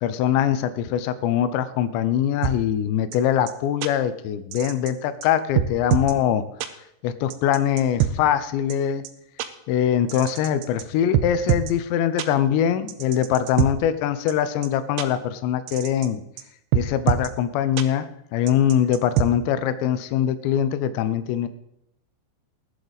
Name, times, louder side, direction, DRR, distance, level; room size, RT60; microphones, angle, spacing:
voice 1, 0.0-6.4 7.0-9.0 9.7-16.2 16.7-21.5, left 10 dB, 90° left, 12 dB, 3.0 m, -23 dB
sound 1, 2.4-2.5 3.1-3.2 3.5-3.6 3.8-3.9 4.5-4.9 5.2-5.3 5.6-6.1 6.6-6.7 7.3-8.1 8.7-8.8 9.0-9.1 9.4-9.5 10.1-10.8 11.1-11.7 12.2-12.3 12.9-13.7 14.3-14.4 14.6-14.7 15.0-15.1 15.7-16.1 16.4-16.5 16.7-17.3 17.8-17.9 18.5-19.3, right 11 dB, 80° right, 2.5 m, -23 dB
19.5 x 8.1 x 4.0 m, 0.81 s
omnidirectional pair, 5.0 m